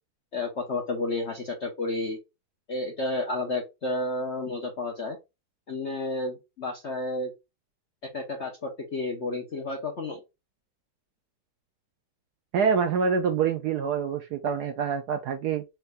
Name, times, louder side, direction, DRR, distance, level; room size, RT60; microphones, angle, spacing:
voice 1, 0.3-2.2 2.7-5.2 5.7-7.3 8.0-10.2, left 2 dB, 55° left, 0.8 m, -31 dB
voice 2, 12.5-15.6, right 6 dB, 70° right, 0.9 m, -26 dB
4.7 x 2.6 x 3.2 m
omnidirectional pair, 2.2 m